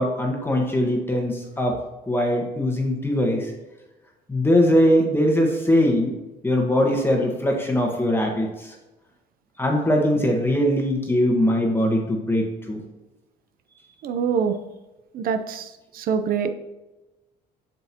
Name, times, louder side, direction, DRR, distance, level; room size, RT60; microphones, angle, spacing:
voice 1, 0.0-1.8 2.1-3.5 4.3-6.1 6.4-8.7 9.6-12.8, equal, 15° left, 1 dB, 1.4 m, -21 dB
voice 2, 14.0-14.6 15.1-15.7 15.9-16.5, right 6 dB, 60° right, 9 dB, 0.7 m, -24 dB
7.7 x 6.8 x 3.0 m, 1.1 s
cardioid pair, 110°, 17 cm